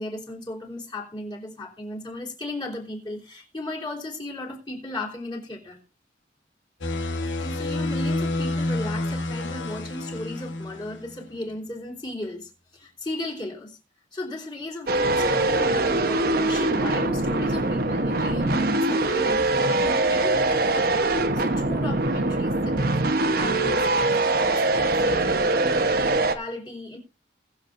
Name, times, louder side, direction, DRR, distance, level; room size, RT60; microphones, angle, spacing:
voice 1, 0.0-5.8 7.4-13.8 14.1-20.6 21.3-23.0 23.3-27.0, left 1 dB, 25° left, 3.3 m, -36 dB
sound 1, 6.8-11.2, left 2 dB, 90° left, 1.4 m, -29 dB
sound 2, 14.9-26.4, right 2 dB, 55° right, 1.0 m, -23 dB
21.0 x 7.4 x 2.6 m
head